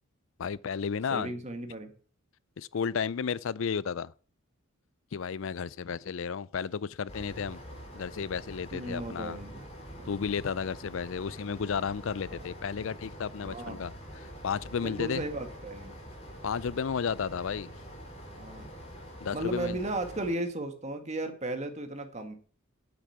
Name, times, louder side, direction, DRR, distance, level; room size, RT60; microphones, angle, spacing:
voice 1, 0.4-1.3 2.6-4.1 5.1-7.6 7.9-9.4 10.1-13.9 14.2-15.2 16.4-17.7 19.2-19.8, left 6 dB, 65° left, 0.4 m, -33 dB
voice 2, 1.1-1.9 8.7-10.1 12.3-12.4 13.4-13.8 14.8-16.0 18.3-18.7 19.3-22.3, right 2 dB, 30° right, 1.9 m, -35 dB
sound 1, 7.1-20.3, equal, 30° left, 3.8 m, -46 dB
9.8 x 8.3 x 7.2 m
head